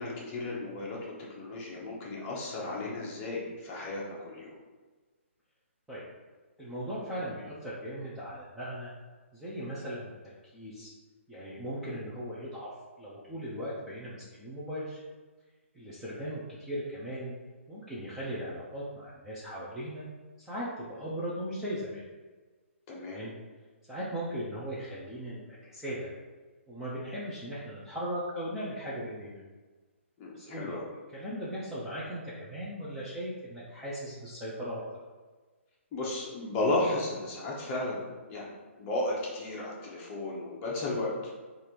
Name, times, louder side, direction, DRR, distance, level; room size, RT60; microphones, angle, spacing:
voice 1, 0.0-4.5 22.9-23.2 30.2-30.8 35.9-38.5 38.8-41.1, left 2 dB, 20° left, -4 dB, 0.8 m, -34 dB
voice 2, 6.6-8.9 9.3-10.1 10.5-10.9 11.3-12.7 13.0-15.0 15.7-17.3 17.7-20.1 20.4-22.0 23.1-23.3 23.9-26.1 26.7-29.4 30.3-30.8 31.1-34.8, equal, 5° right, -10 dB, 0.5 m, -38 dB
3.3 x 2.5 x 4.4 m, 1.3 s
hypercardioid pair, 160°, 7 cm